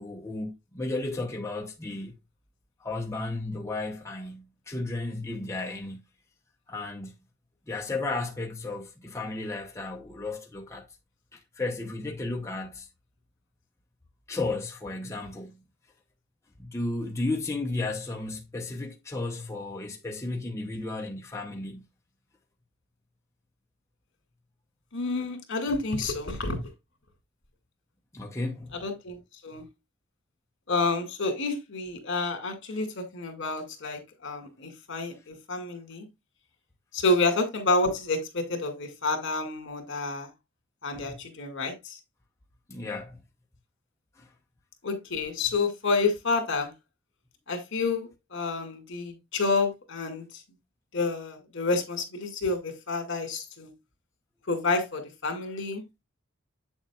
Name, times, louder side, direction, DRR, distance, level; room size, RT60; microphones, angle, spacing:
voice 1, 0.0-2.1 2.8-6.0 6.7-7.2 7.7-10.8 11.3-12.9 14.3-15.6 16.6-21.8 28.1-28.8 40.9-41.2 42.7-43.2 44.2-44.3, left 2 dB, 15° left, 0.8 m, -34 dB
voice 2, 24.9-26.6 28.7-29.2 29.4-29.6 30.7-36.1 36.9-40.3 40.8-42.0 44.8-46.7 47.5-50.4 50.9-53.7 54.5-55.8, left 3 dB, 60° left, 2.3 m, -29 dB
8.0 x 7.1 x 2.4 m
head